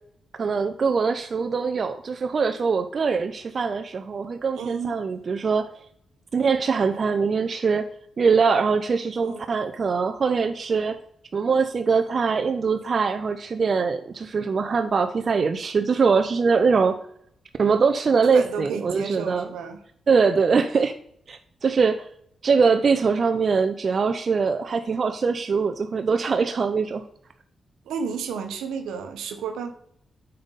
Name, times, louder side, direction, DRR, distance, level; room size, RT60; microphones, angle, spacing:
voice 1, 0.4-5.7 6.3-7.9 8.2-11.0 11.3-17.0 17.6-19.5 20.1-20.9 21.3-22.1 22.4-27.0, right 5 dB, 55° right, 7 dB, 0.6 m, -22 dB
voice 2, 4.5-4.9 9.2-9.5 18.3-19.8 27.9-29.7, right 6 dB, 85° right, 6 dB, 1.1 m, -32 dB
8.8 x 5.5 x 4.0 m, 0.69 s
supercardioid pair, 55°, 0 cm